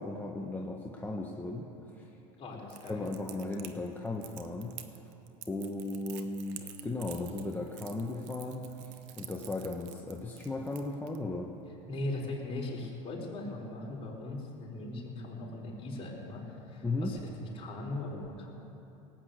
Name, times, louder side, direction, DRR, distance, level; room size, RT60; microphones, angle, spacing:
voice 1, 0.0-1.7 2.0-2.1 2.9-4.8 5.5-11.5 16.8-17.1, left 2 dB, 10° left, -1 dB, 1.2 m, -36 dB
voice 2, 2.4-3.1 11.9-18.5, left 2 dB, 35° left, -3 dB, 4.4 m, -39 dB
Crackle, 2.7-11.2, right 13 dB, 75° right, 1.1 m, -49 dB
18.5 x 8.5 x 7.8 m, 2.9 s
supercardioid pair, 100°, 17 cm